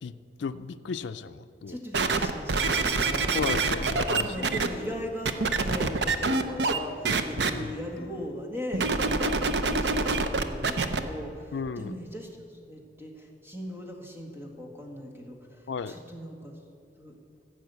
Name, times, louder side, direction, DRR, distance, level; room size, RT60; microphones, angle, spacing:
voice 1, 0.0-1.8 3.3-4.4 7.5-7.7 9.2-9.4 11.5-12.0 15.7-15.9, left 5 dB, 80° left, 12 dB, 0.4 m, -34 dB
voice 2, 1.7-3.4 4.2-16.5 17.0-17.2, equal, 15° right, 0 dB, 1.8 m, -39 dB
sound 1, 1.9-4.7 5.2-6.8 7.0-7.5 8.7-11.0 11.7-11.8, right 3 dB, 70° right, 0.7 m, -26 dB
sound 2, 2.7-2.9 3.5-3.7 4.4-4.6 5.3-5.6 6.3-6.5 7.1-7.3 8.0-8.2 8.8-9.1, left 2 dB, 60° left, 0.8 m, -46 dB
15.0 x 6.3 x 8.1 m, 2.5 s
head